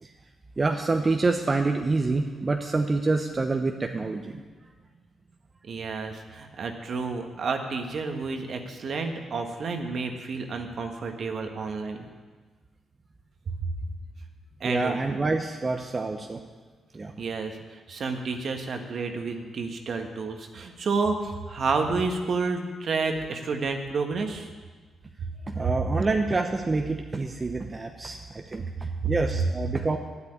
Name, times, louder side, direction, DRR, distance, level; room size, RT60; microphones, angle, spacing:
voice 1, 0.6-4.4 14.6-16.4 16.9-17.1 25.5-30.0, right 3 dB, 35° right, 4 dB, 1.0 m, -27 dB
voice 2, 5.7-12.1 13.5-13.6 14.6-15.0 17.2-17.6 17.9-24.5 29.0-29.1, right 4 dB, 60° right, 5 dB, 1.6 m, -30 dB
9.6 x 8.3 x 8.8 m, 1.4 s
hypercardioid pair, 45°, 0 cm